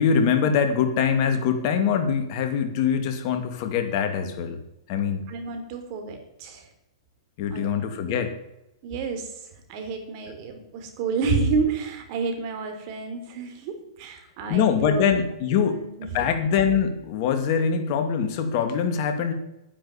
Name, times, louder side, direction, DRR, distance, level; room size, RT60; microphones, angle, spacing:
voice 1, 0.0-4.6 4.9-5.3 7.4-8.3 14.5-15.8 16.1-19.3, left 7 dB, 50° left, 7 dB, 2.5 m, -23 dB
voice 2, 5.3-6.6 7.5-8.3 8.8-9.3 9.7-15.0 15.6-16.1, right 4 dB, 45° right, 5 dB, 3.8 m, -30 dB
11.0 x 10.0 x 8.8 m, 0.90 s
hypercardioid pair, 130°, 3 cm